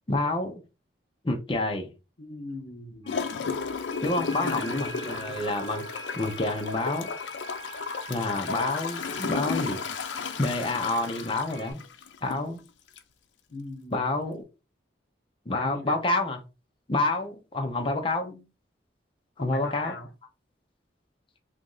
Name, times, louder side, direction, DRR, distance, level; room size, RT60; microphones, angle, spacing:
voice 1, 0.1-0.6 1.2-1.9 4.0-5.8 6.1-7.1 8.1-9.8 10.4-11.8 12.2-12.6 13.9-14.4 15.5-16.4 16.9-18.3 19.4-19.9, left 2 dB, 30° left, 0.6 m, -28 dB
voice 2, 2.2-3.4 4.2-5.4 13.5-14.0 15.5-16.0 18.2-18.4 19.4-20.1, left 2 dB, 65° left, 0.8 m, -41 dB
sound 1, 3.0-11.7, right 2 dB, 20° right, 1.5 m, -44 dB
Gurgling / Toilet flush, 3.1-12.5 13.0-13.1, left 5 dB, 90° left, 0.5 m, -34 dB
3.0 x 2.6 x 3.8 m
head